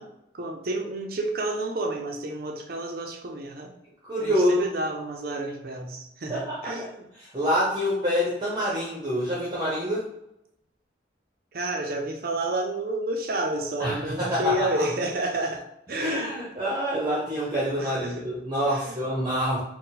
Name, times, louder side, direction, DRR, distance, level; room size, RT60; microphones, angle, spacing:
voice 1, 0.0-3.7 4.2-7.1 11.5-15.6 15.9-16.3 17.8-18.2 18.7-19.0, right 2 dB, 50° right, 2 dB, 0.5 m, -30 dB
voice 2, 4.1-4.7 6.3-6.7 7.3-10.1 13.8-14.8 16.0-19.6, equal, 25° right, -6 dB, 0.8 m, -26 dB
4.3 x 2.2 x 4.0 m, 0.82 s
head